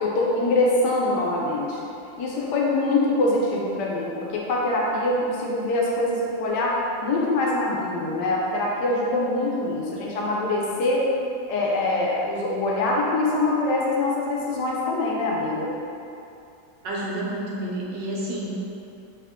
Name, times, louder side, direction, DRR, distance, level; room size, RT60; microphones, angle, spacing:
voice 1, 0.0-1.8 2.2-6.7 7.0-11.1 11.5-15.7, left 2 dB, 75° left, -4 dB, 1.2 m, -24 dB
voice 2, 16.8-18.6, right 1 dB, 80° right, -4 dB, 1.4 m, -29 dB
3.6 x 2.8 x 3.5 m, 2.7 s
omnidirectional pair, 1.9 m